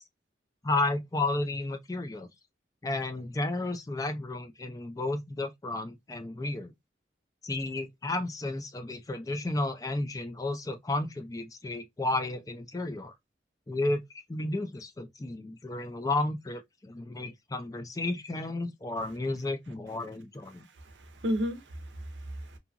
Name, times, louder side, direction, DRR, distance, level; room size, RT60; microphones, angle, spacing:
voice 1, 0.6-2.3 2.8-6.7 7.4-13.1 13.7-14.0 14.3-20.7, left 2 dB, 20° left, 0.4 m, -32 dB
voice 2, 20.5-22.6, equal, 85° right, 0.6 m, -34 dB
2.7 x 2.3 x 2.4 m
head